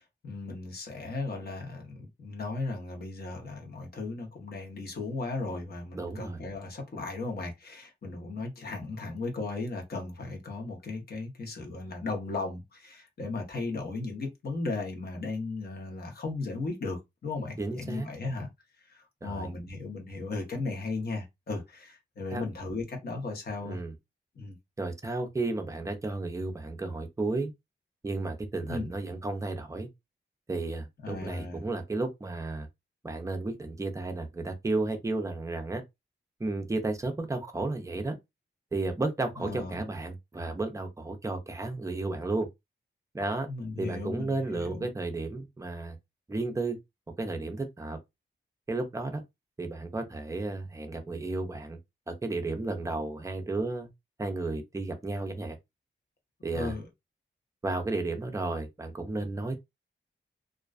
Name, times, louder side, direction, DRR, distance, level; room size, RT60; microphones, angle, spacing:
voice 1, 0.0-18.5 18.9-23.8 24.4-24.6 28.7-28.9 31.0-31.6 39.4-39.8 43.5-44.9 56.5-56.9, left 3 dB, 55° left, 0.9 m, -36 dB
voice 2, 5.9-6.4 17.6-18.1 19.2-19.5 22.3-22.4 23.6-23.9 24.8-27.5 28.0-29.9 30.5-32.7 33.0-35.8 36.4-38.2 38.7-42.5 43.1-43.5 43.8-46.0 46.3-46.8 47.2-48.0 48.7-49.2 49.6-51.8 52.1-53.9 54.2-55.6 56.4-56.8 57.6-59.6, right 2 dB, 15° right, 0.4 m, -33 dB
2.4 x 2.2 x 2.3 m
wide cardioid pair, 175°, 20 cm